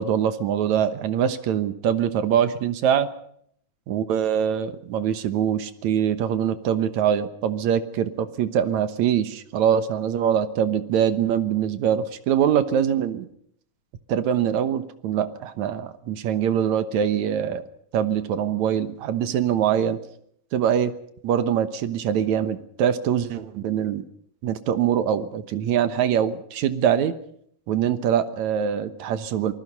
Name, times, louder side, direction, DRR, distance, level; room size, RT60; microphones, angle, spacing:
voice 1, 0.0-3.1 3.9-13.3 14.1-17.6 17.9-20.0 20.5-20.9 21.2-24.0 24.4-27.2 27.7-29.5, right 9 dB, 75° right, 11 dB, 2.4 m, -23 dB
27.5 x 19.5 x 5.5 m, 0.68 s
omnidirectional pair, 3.5 m